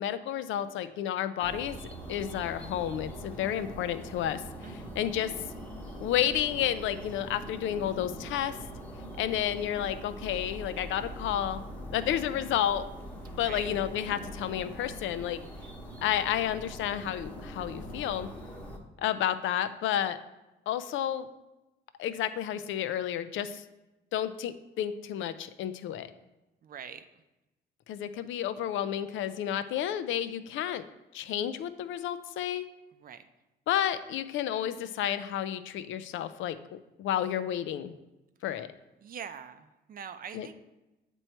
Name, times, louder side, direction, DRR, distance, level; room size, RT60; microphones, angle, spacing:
voice 1, 0.0-1.8 2.1-5.3 6.0-8.6 9.2-11.6 11.9-12.8 13.4-15.4 16.0-18.3 19.0-20.2 20.7-21.3 22.0-23.6 24.1-26.1 27.9-30.8 31.1-32.6 33.7-36.6 37.0-37.9 38.4-38.7 40.3-40.5, left 10 dB, 80° left, 12 dB, 0.4 m, -31 dB
sound 1, 1.4-18.8, right 1 dB, 5° left, 1.0 m, -42 dB
voice 2, 4.6-5.0 13.3-13.7 26.6-27.0 33.0-33.2 39.0-40.5, right 7 dB, 45° right, 10 dB, 0.5 m, -44 dB
7.8 x 3.0 x 4.3 m, 1.0 s
cardioid pair, 90°, 20 cm